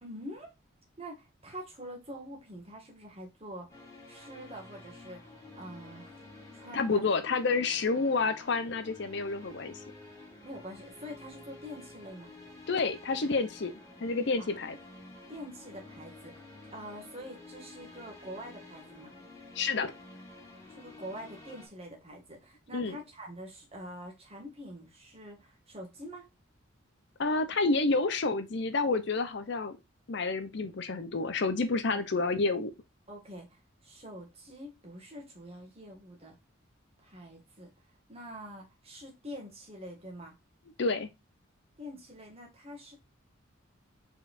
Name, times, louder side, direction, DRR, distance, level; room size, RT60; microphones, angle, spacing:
voice 1, 0.0-0.5 1.0-3.8 4.1-6.2 6.5-7.1 10.4-12.3 14.4-14.5 15.3-16.4 16.7-19.1 20.7-26.3 31.8-32.0 33.1-36.4 37.0-37.7 38.1-40.3 41.8-43.0, equal, 30° right, 1.7 m, -45 dB
sound 1, 3.7-21.7, left 2 dB, 15° left, 1.6 m, -51 dB
voice 2, 6.7-9.7 12.7-13.7 14.0-14.8 19.5-19.9 22.7-23.0 27.2-29.8 30.1-32.7 40.8-41.1, left 3 dB, 55° left, 0.6 m, -29 dB
4.5 x 4.3 x 2.5 m
head